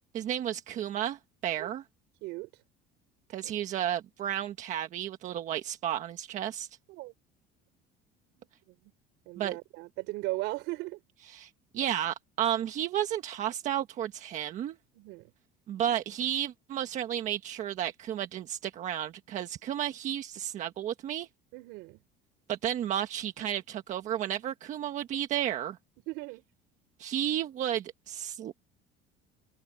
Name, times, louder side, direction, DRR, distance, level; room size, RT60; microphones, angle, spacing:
voice 1, 0.1-1.8 3.3-6.7 9.4-9.6 11.3-14.8 15.7-21.3 22.5-25.8 27.0-28.6, right 11 dB, 40° right, 1.4 m, -32 dB
voice 2, 8.4-8.9 9.3-11.0 14.9-15.3 21.5-22.0 26.1-26.4, right 21 dB, 70° right, 5.7 m, -38 dB
cardioid pair, 165°, 19 cm